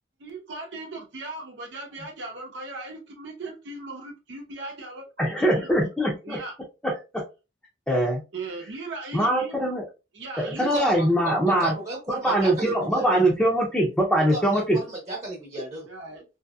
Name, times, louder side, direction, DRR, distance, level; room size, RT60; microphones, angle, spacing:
voice 1, 0.2-5.7 6.2-6.6 8.3-9.6 10.1-10.7 15.9-16.2, right 3 dB, 85° right, 0.7 m, -38 dB
voice 2, 5.2-6.4 6.8-7.2 7.9-8.2 9.1-9.8 10.4-11.7 12.1-14.8, right 1 dB, 5° left, 0.6 m, -22 dB
voice 3, 10.7-13.3 14.3-15.9, right 2 dB, 40° right, 0.9 m, -34 dB
2.7 x 2.7 x 2.3 m
head